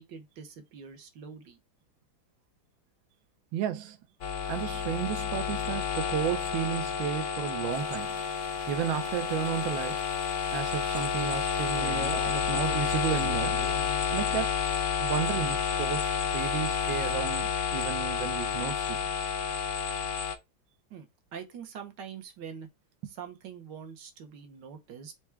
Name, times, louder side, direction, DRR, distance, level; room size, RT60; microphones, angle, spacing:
voice 1, 0.0-1.6 20.9-21.1 21.3-22.7 23.0-25.1, right 7 dB, 70° right, 1.4 m, -44 dB
voice 2, 3.5-4.0 4.5-8.2 8.7-10.0 10.5-13.6 14.1-14.5 15.0-19.0, right 10 dB, 90° right, 1.4 m, -33 dB
sound 1, 4.2-20.4, left 7 dB, 65° left, 0.7 m, -30 dB
sound 2, 7.7-17.2, right 5 dB, 55° right, 1.2 m, -46 dB
4.6 x 2.2 x 4.3 m
omnidirectional pair, 2.0 m